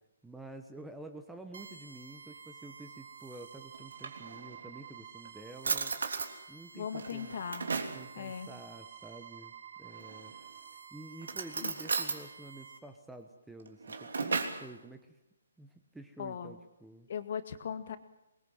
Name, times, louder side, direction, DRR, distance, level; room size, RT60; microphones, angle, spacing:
voice 1, 0.2-6.0 6.5-7.3 7.9-10.3 10.9-15.2 15.6-17.1, right 2 dB, 5° right, 6 dB, 1.0 m, -49 dB
sound 1, 1.5-12.8, right 7 dB, 50° right, 3.1 m, -51 dB
Drawer open or close, 3.7-4.7 5.2-5.3 5.6-6.3 6.9-8.0 9.9-10.5 11.2-12.2 13.6-14.7, right 4 dB, 80° right, 3.4 m, -35 dB
voice 2, 6.7-7.7 8.2-8.5 11.6-11.7 16.2-16.5 17.1-18.0, left 7 dB, 45° left, 10 dB, 2.0 m, -38 dB
23.5 x 21.0 x 7.8 m, 0.89 s
hypercardioid pair, 170°, 0 cm